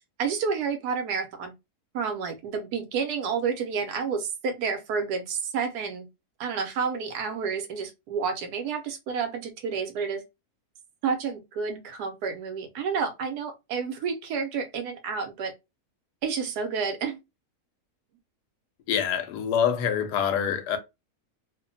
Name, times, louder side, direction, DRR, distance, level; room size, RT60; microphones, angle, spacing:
voice 1, 0.2-1.5 1.9-6.1 6.4-10.2 11.0-15.5 16.2-17.2, right 5 dB, 80° right, 1.1 m, -30 dB
voice 2, 18.9-20.8, left 8 dB, 90° left, 1.2 m, -25 dB
2.9 x 2.1 x 2.5 m
omnidirectional pair, 1.7 m